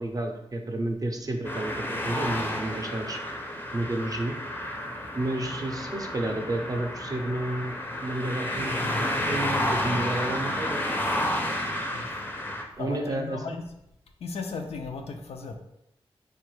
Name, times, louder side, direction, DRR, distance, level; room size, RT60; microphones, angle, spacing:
voice 1, 0.0-3.2 3.7-4.4 5.1-10.9 12.8-13.4, right 1 dB, 35° right, 3 dB, 0.5 m, -31 dB
sound 1, 1.4-12.6, left 1 dB, 20° left, 0.4 m, -31 dB
voice 2, 12.8-13.6 14.2-15.6, left 4 dB, 85° left, 4 dB, 0.4 m, -36 dB
2.9 x 2.2 x 3.1 m, 0.84 s
cardioid pair, 70°, 10 cm